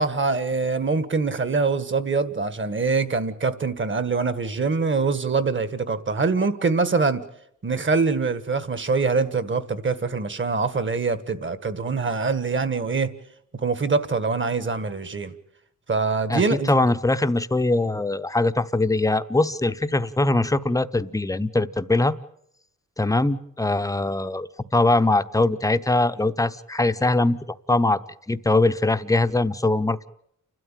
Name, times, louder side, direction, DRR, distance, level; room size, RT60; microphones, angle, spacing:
voice 1, 0.0-7.2 7.6-13.1 13.6-15.3 15.9-16.9, right 4 dB, 40° right, 1.6 m, -24 dB
voice 2, 16.3-22.1 23.0-27.4 27.7-28.0 28.3-30.1, left 2 dB, 10° left, 0.8 m, -22 dB
29.5 x 12.5 x 9.1 m
wide cardioid pair, 120°, 31 cm